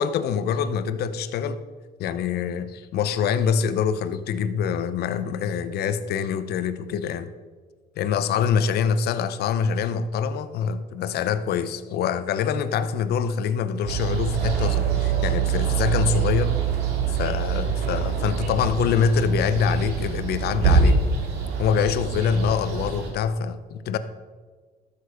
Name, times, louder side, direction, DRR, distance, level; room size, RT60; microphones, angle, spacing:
voice 1, 0.0-1.6 2.0-7.3 8.0-16.6 17.1-21.0 21.6-24.0, left 7 dB, 70° left, 0.7 m, -25 dB
sound 1, 13.9-23.1, right 6 dB, 90° right, 2.2 m, -24 dB
12.5 x 6.9 x 5.1 m
cardioid pair, 110°, 17 cm